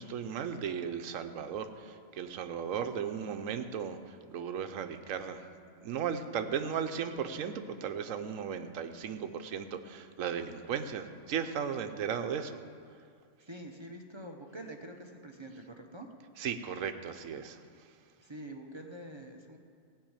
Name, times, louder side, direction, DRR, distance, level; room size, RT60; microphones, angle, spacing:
voice 1, 0.0-5.5 5.8-12.6 16.4-17.6, right 7 dB, 70° right, 8 dB, 1.1 m, -36 dB
voice 2, 13.5-16.1 18.2-19.6, right 1 dB, 25° right, 2 dB, 0.9 m, -46 dB
16.0 x 5.5 x 8.9 m, 2.2 s
omnidirectional pair, 1.4 m